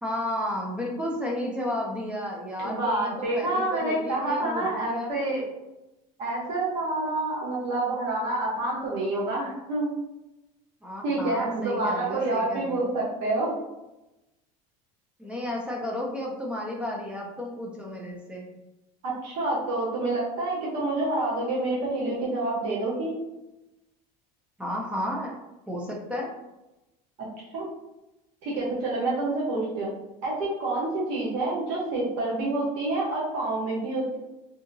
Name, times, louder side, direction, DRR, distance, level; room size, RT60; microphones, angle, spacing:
voice 1, 0.0-5.2 10.8-12.9 15.2-18.5 24.6-25.3 25.7-26.3, left 1 dB, 5° right, -2 dB, 0.4 m, -33 dB
voice 2, 2.6-5.4 6.2-9.9 11.0-13.6 19.0-23.1 27.5-27.7 28.4-29.9 30.2-34.2, right 2 dB, 60° right, -5 dB, 0.9 m, -28 dB
2.7 x 2.7 x 2.6 m, 0.96 s
cardioid pair, 155°, 18 cm